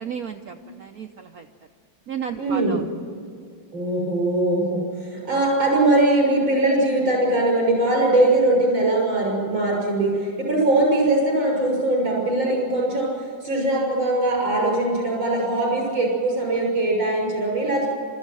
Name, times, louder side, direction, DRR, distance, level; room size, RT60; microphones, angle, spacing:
voice 1, 0.0-1.5 2.1-3.0, right 7 dB, 55° right, 5 dB, 1.2 m, -34 dB
voice 2, 2.4-2.8 3.7-13.1 13.4-17.9, right 2 dB, 80° right, -2 dB, 7.2 m, -21 dB
29.0 x 14.5 x 9.0 m, 2.4 s
omnidirectional pair, 2.1 m